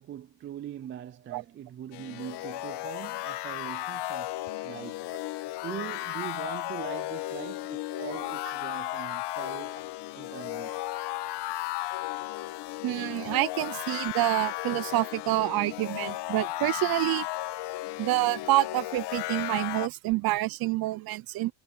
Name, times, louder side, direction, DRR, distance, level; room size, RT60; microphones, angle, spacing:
voice 1, 0.0-4.4 4.6-5.0 5.3-9.8 10.1-10.8, right 11 dB, 30° right, 0.4 m, -41 dB
sound 1, 1.9-19.9, left 16 dB, 60° left, 1.4 m, -35 dB
voice 2, 12.8-17.3 18.0-21.5, right 18 dB, 50° right, 0.7 m, -27 dB
cardioid pair, 140°, 45 cm